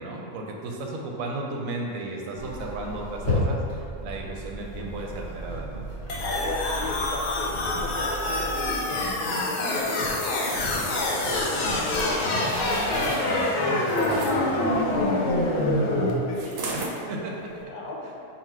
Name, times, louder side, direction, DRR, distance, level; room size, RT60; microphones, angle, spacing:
voice 1, 0.0-3.6 4.0-5.9 13.7-13.8 16.7-17.5, right 2 dB, 90° right, 0 dB, 1.0 m, -34 dB
sound 1, 2.3-8.8, left 1 dB, 15° left, 0.9 m, -33 dB
sound 2, 6.1-16.1, left 2 dB, 75° left, 1.0 m, -26 dB
voice 2, 6.2-10.4 10.7-16.7 17.5-18.2, left 2 dB, 55° left, -3 dB, 0.5 m, -35 dB
sound 3, 10.4-14.4 16.3-17.0 17.5-17.6, right 3 dB, 60° right, 0.7 m, -36 dB
4.1 x 2.1 x 4.5 m, 2.5 s
omnidirectional pair, 1.4 m